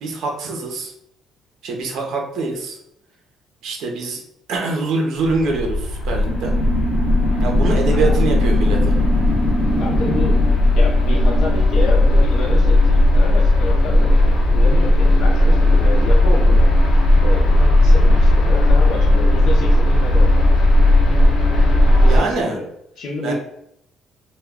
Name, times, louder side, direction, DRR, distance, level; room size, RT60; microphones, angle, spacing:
voice 1, 0.0-0.9 1.6-2.8 3.6-4.2 4.5-6.6 7.4-8.9 22.1-22.6 23.2-23.3, right 3 dB, 65° right, 1 dB, 0.6 m, -24 dB
sound 1, 5.2-22.2, left 1 dB, 85° left, 1.0 m, -15 dB
sound 2, 6.3-12.5, right 1 dB, 20° right, 0.8 m, -26 dB
voice 2, 9.8-20.3 21.8-22.7 23.0-23.3, left 2 dB, 60° left, -2 dB, 0.5 m, -29 dB
2.2 x 2.1 x 3.4 m, 0.76 s
cardioid pair, 160°, 0 cm